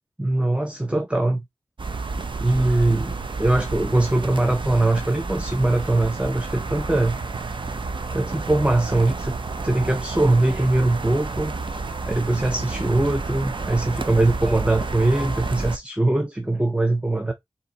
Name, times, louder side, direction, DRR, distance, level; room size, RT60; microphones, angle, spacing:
voice 1, 0.2-1.4 2.4-7.2 8.1-9.3 9.6-11.5 12.1-17.3, right 2 dB, 10° right, 0.7 m, -21 dB
sound 1, 1.8-15.8, right 3 dB, 50° right, 0.7 m, -30 dB
4.3 x 2.8 x 3.9 m
cardioid pair, 45°, 10 cm